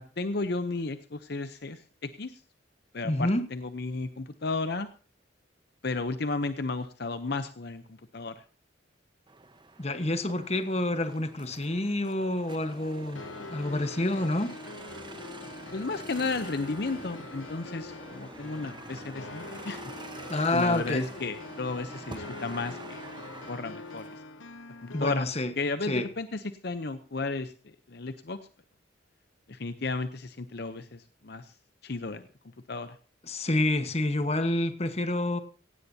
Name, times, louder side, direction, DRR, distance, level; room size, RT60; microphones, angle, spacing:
voice 1, 0.0-2.4 2.9-4.9 5.8-7.8 8.1-8.4 15.7-19.9 20.5-23.0 23.5-24.2 24.8-25.3 25.6-27.5 27.9-28.4 29.5-31.5 31.8-32.3 32.7-33.0, left 3 dB, 55° left, 0.7 m, -33 dB
voice 2, 3.0-3.5 9.8-13.2 13.5-14.6 20.3-21.1 24.9-25.5 25.9-26.1 33.2-35.4, left 1 dB, 30° left, 1.3 m, -28 dB
sound 1, 9.3-24.2, right 3 dB, 25° right, 1.0 m, -48 dB
sound 2, 12.5-22.9, equal, 5° left, 1.7 m, -50 dB
sound 3, 13.2-25.2, left 3 dB, 80° left, 1.0 m, -44 dB
17.0 x 16.0 x 2.8 m
head